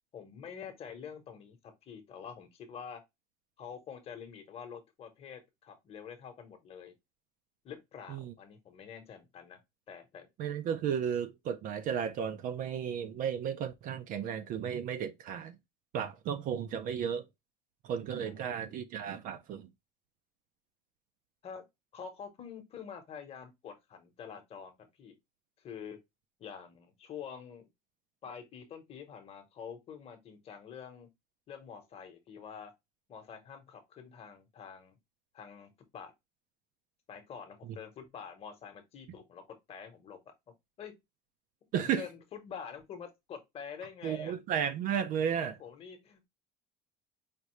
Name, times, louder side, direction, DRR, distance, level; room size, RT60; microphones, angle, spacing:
voice 1, 0.1-3.0 3.6-6.9 7.6-9.6 9.9-10.3 18.2-18.3 18.6-18.7 21.4-21.6 21.9-25.1 25.6-26.0 26.4-27.7 28.2-31.1 31.5-32.7 33.1-35.0 35.3-36.1 37.1-40.2 40.8-41.0 41.8-44.3 45.6-46.3, left 7 dB, 30° left, 1.0 m, -47 dB
voice 2, 10.4-15.6 15.9-17.3 17.8-19.7 41.7-42.1 44.0-45.6, right 8 dB, 45° right, 0.5 m, -34 dB
5.1 x 2.7 x 3.0 m
cardioid pair, 180°, 20 cm